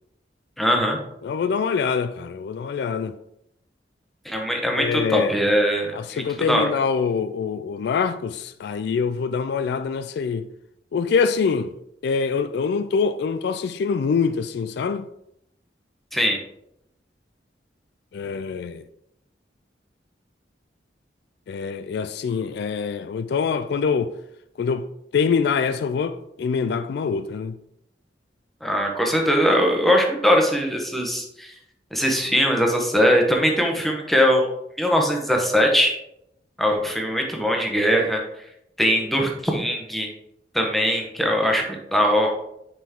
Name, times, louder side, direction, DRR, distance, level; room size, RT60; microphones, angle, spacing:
voice 1, 0.6-1.0 4.2-6.6 16.1-16.4 28.6-31.5 31.9-34.5 34.8-35.9 36.6-38.2 38.8-40.1 40.5-42.3, equal, ahead, 1.0 m, -21 dB
voice 2, 1.2-3.1 4.8-5.3 5.9-10.4 10.9-11.7 12.0-15.1 18.1-18.8 21.5-24.1 24.6-24.9 25.1-27.6, left 5 dB, 65° left, 0.3 m, -24 dB
5.7 x 4.9 x 3.6 m
head